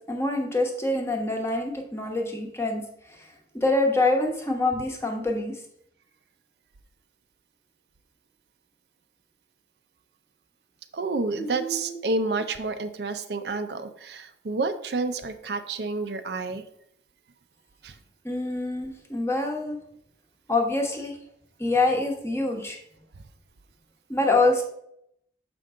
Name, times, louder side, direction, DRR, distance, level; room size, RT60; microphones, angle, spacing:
voice 1, 0.1-3.3 3.5-5.6 11.4-12.0 12.4-12.5 18.2-19.8 20.5-21.2 21.6-22.8 24.1-24.6, left 2 dB, 15° left, 1 dB, 1.1 m, -26 dB
voice 2, 10.9-16.6 17.8-17.9, right 3 dB, 65° right, 9 dB, 0.5 m, -29 dB
6.8 x 5.2 x 3.7 m, 0.72 s
head